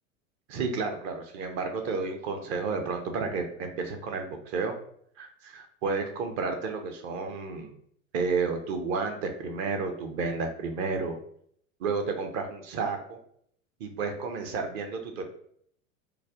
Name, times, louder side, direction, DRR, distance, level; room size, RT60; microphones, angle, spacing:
voice 1, 0.5-4.7 5.2-7.7 8.1-11.2 11.8-13.2 13.8-15.2, right 4 dB, 35° right, 5 dB, 0.6 m, -31 dB
3.2 x 2.1 x 3.5 m, 0.64 s
figure-of-eight pair, 85°, 41 cm